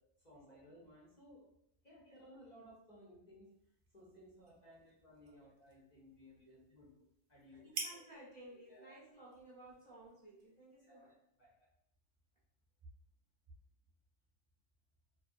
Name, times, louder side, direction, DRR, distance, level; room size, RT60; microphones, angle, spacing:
voice 1, 0.0-1.4 1.8-3.5 3.9-7.0 7.3-7.6 7.9-8.1 8.5-9.0 10.8-11.1 11.4-11.6, equal, 40° left, -7 dB, 0.8 m, -60 dB
sound 1, 3.4-11.1, right 4 dB, 75° right, 0.8 m, -52 dB
voice 2, 7.5-11.2, right 1 dB, 30° right, -8 dB, 0.7 m, -57 dB
2.7 x 2.1 x 2.5 m, 0.74 s
omnidirectional pair, 1.2 m